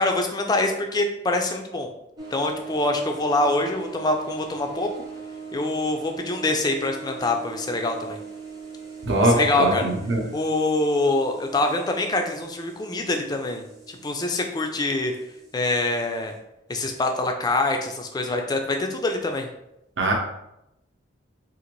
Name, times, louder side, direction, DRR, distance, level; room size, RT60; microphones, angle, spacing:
voice 1, 0.0-1.9 2.3-5.0 5.5-8.2 9.3-9.8 10.3-15.1 15.5-16.3 16.7-19.5, left 2 dB, 20° left, 4 dB, 0.3 m, -25 dB
sound 1, 2.2-16.4, right 5 dB, 20° right, 0.7 m, -41 dB
voice 2, 9.0-10.3 20.0-20.1, right 1 dB, 70° right, 0 dB, 0.8 m, -21 dB
3.8 x 2.5 x 3.0 m, 0.86 s
head